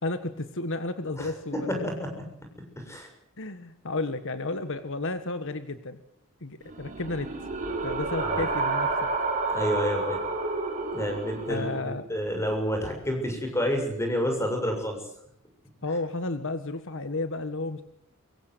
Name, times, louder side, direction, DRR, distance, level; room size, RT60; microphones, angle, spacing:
voice 1, 0.0-1.9 3.4-6.0 6.4-7.3 7.8-9.1 11.5-12.0 15.8-17.8, left 2 dB, 60° left, 10 dB, 1.6 m, -32 dB
voice 2, 1.2-2.2 2.8-3.1 8.2-8.4 9.5-10.2 10.9-15.0, equal, 15° left, 4 dB, 7.1 m, -29 dB
sound 1, 6.7-11.8, right 3 dB, 35° right, 5.0 m, -30 dB
24.5 x 23.0 x 8.1 m, 0.72 s
head